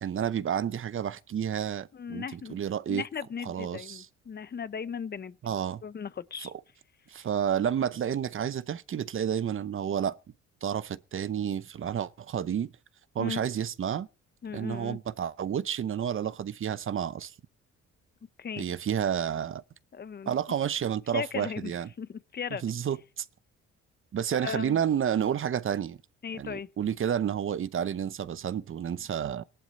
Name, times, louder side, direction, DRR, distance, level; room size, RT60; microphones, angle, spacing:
voice 1, 0.0-3.0 3.4-4.1 5.4-5.8 6.4-6.5 7.1-10.2 10.6-12.7 13.1-14.1 14.5-17.3 18.6-19.6 20.3-21.9 22.6-23.3 24.1-26.0 26.4-29.4, right 9 dB, 45° right, 0.7 m, -30 dB
voice 2, 1.9-2.6 2.9-5.3 5.8-6.5 13.2-13.4 14.4-15.0 18.4-18.6 19.9-20.4 21.1-21.7 22.0-22.6 24.4-24.8 26.2-26.7, left 7 dB, 35° left, 0.8 m, -37 dB
18.0 x 11.5 x 4.2 m
cardioid pair, 90°, 30 cm